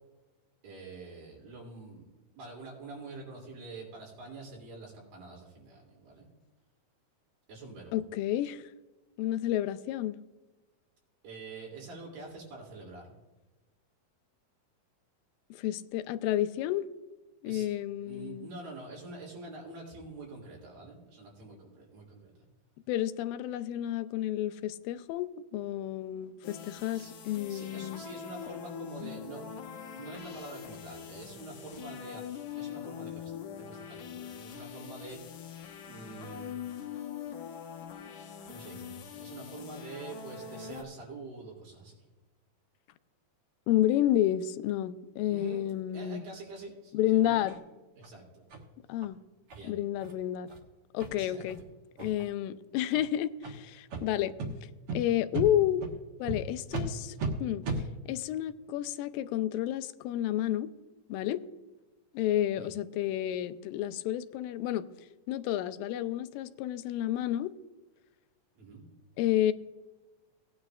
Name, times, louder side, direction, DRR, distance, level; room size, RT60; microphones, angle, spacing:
voice 1, 0.6-2.1 2.3-6.3 7.5-8.0 11.2-13.2 17.5-17.7 18.0-22.3 26.9-27.1 27.5-29.5 29.9-35.5 35.9-36.6 38.5-41.9 45.3-45.6 45.9-47.5 48.0-48.5 49.5-49.8 51.1-51.4 62.5-62.7 68.6-68.8, right 3 dB, 90° right, -1 dB, 4.8 m, -46 dB
voice 2, 7.9-8.7 9.2-10.2 15.5-16.9 17.4-18.5 22.9-28.0 43.7-46.2 46.9-47.6 48.9-49.2 49.6-50.5 50.9-51.6 52.0-54.3 54.9-55.9 56.2-57.7 58.1-60.7 61.1-61.4 62.1-64.9 65.3-67.5 69.2-69.5, left 12 dB, 90° left, 12 dB, 2.3 m, -30 dB
sound 1, 26.4-40.8, left 8 dB, 70° left, 2.3 m, -43 dB
sound 2, 47.5-47.6 48.0-48.1 48.5-48.6 49.0-49.1 49.5-49.6 50.0-50.1 50.5-50.6 51.0-51.1 51.5-51.6 52.0-52.3 52.9-53.0 53.4-53.5 53.9-54.0 54.4-54.5 54.9-55.0 55.3-55.5 55.8-55.9 56.3-56.4 56.7-56.9 57.2-57.3 57.6-57.8, right 4 dB, 55° right, 1.8 m, -35 dB
18.0 x 9.5 x 2.5 m, 1.1 s
omnidirectional pair, 4.0 m